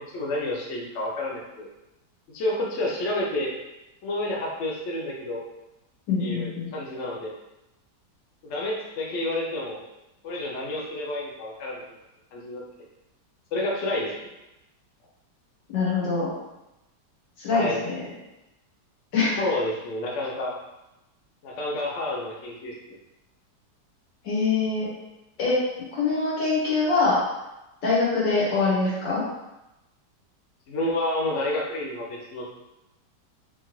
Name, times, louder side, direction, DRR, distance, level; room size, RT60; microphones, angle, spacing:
voice 1, 0.1-1.7 2.3-3.5 4.0-5.4 6.2-7.3 8.5-9.8 10.2-11.8 12.3-12.6 13.5-14.3 17.5-17.8 19.4-20.5 21.4-23.0 30.7-32.5, left 1 dB, 60° left, -2 dB, 0.8 m, -29 dB
voice 2, 6.1-6.7 15.7-16.3 17.4-18.1 19.1-19.4 24.2-24.9 25.4-25.6 25.9-27.2 27.8-29.2, left 3 dB, 80° left, -7 dB, 1.9 m, -24 dB
3.6 x 2.9 x 3.0 m, 0.94 s
omnidirectional pair, 1.9 m